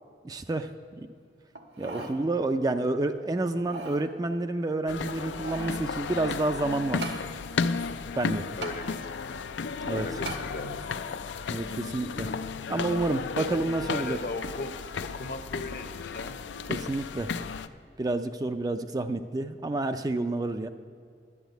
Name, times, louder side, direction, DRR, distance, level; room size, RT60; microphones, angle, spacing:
voice 1, 0.2-0.7 1.0-1.1 1.8-7.2 8.2-8.5 9.8-10.1 11.5-12.3 12.7-14.2 16.7-17.3 18.0-20.7, right 2 dB, 20° right, 8 dB, 0.3 m, -29 dB
sound 1, 1.6-2.2 2.6-2.7 3.5-4.0 5.0-5.8 7.0-7.2 8.6-8.8 10.3-10.5 11.1-11.2, right 2 dB, 80° right, 1.3 m, -38 dB
sound 2, 4.9-17.7, left 5 dB, 85° left, 0.4 m, -34 dB
voice 2, 8.6-9.4 9.9-10.8 12.1-12.2 13.3-13.6 13.9-16.3, left 2 dB, 50° left, 8 dB, 0.8 m, -37 dB
11.0 x 7.2 x 9.2 m, 2.3 s
head